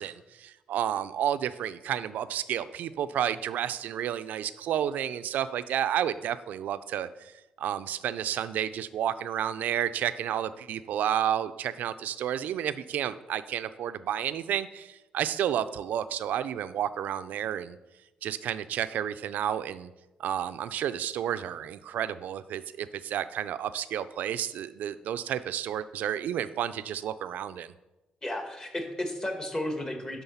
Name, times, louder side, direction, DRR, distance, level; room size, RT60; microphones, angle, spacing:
voice 1, 0.0-7.3 7.6-17.8 18.2-19.9 20.2-27.7, right 10 dB, 80° right, 13 dB, 0.4 m, -31 dB
voice 2, 28.2-30.2, left 1 dB, 25° left, 4 dB, 1.5 m, -33 dB
10.5 x 3.8 x 5.6 m, 1.0 s
cardioid pair, 95°, 3 cm